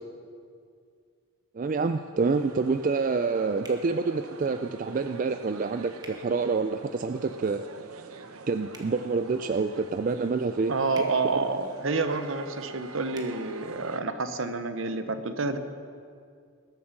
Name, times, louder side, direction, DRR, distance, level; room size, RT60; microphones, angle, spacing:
voice 1, 1.5-7.6 8.5-10.7, right 4 dB, 40° right, 8 dB, 0.3 m, -27 dB
sound 1, 2.2-14.0, right 4 dB, 90° right, 0.8 m, -45 dB
sound 2, 3.6-3.8 6.0-6.2 8.7-8.9 10.9-11.1 13.1-13.3, right 2 dB, 20° right, 1.2 m, -46 dB
voice 2, 10.7-15.6, right 3 dB, 65° right, 10 dB, 0.9 m, -29 dB
20.5 x 7.5 x 5.9 m, 2.2 s
head